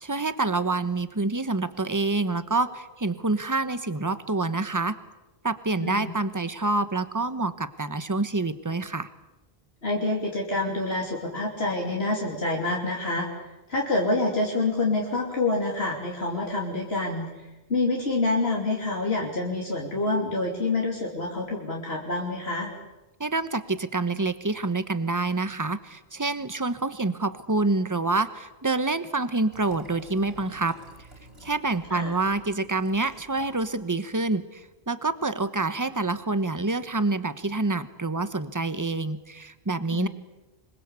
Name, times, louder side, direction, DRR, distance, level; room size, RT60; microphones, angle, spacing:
voice 1, 0.0-4.9 5.4-9.1 23.2-30.7 31.4-40.1, right 3 dB, 20° right, 13 dB, 1.1 m, -27 dB
voice 2, 5.8-6.1 9.8-13.3 13.7-22.7 31.9-32.1 39.9-40.1, left 2 dB, 75° left, -2 dB, 3.4 m, -27 dB
Liquid, 29.5-33.7 34.1-34.2, equal, 80° right, 6.6 m, -50 dB
25.5 x 21.5 x 8.3 m, 1.0 s
omnidirectional pair, 1.0 m